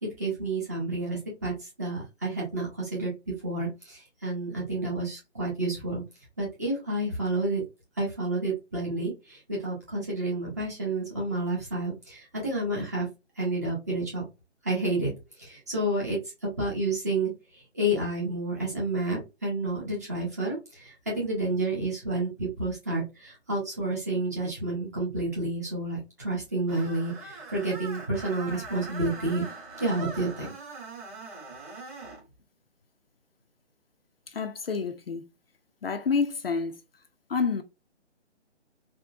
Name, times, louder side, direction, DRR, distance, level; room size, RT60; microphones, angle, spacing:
voice 1, 0.0-6.0 6.4-7.6 8.0-13.1 13.4-14.2 14.6-15.1 15.4-17.3 17.7-29.5 29.8-30.5, right 2 dB, 15° right, 0.6 m, -30 dB
Screech, 26.7-32.2, right 3 dB, 30° right, 1.5 m, -42 dB
voice 2, 34.3-35.2 35.8-36.8 37.3-37.6, left 5 dB, 55° left, 0.5 m, -28 dB
3.6 x 2.1 x 2.4 m
figure-of-eight pair, 150°, 35 cm